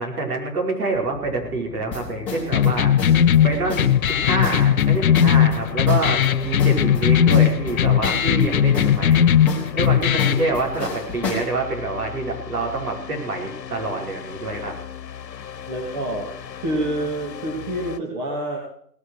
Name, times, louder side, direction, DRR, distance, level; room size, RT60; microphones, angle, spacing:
voice 1, 0.0-2.9 3.4-9.2 9.7-14.7, right 3 dB, 60° right, 0 dB, 5.5 m, -26 dB
sound 1, 0.9-18.0, left 8 dB, 85° left, 1.2 m, -37 dB
sound 2, 1.9-11.5, left 4 dB, 5° left, 2.3 m, -32 dB
sound 3, 2.5-10.5, left 9 dB, 60° left, 0.6 m, -18 dB
voice 2, 15.7-16.3 16.6-18.6, right 1 dB, 25° right, -1 dB, 2.8 m, -27 dB
18.0 x 9.4 x 6.4 m, 0.62 s
hypercardioid pair, 170°, 49 cm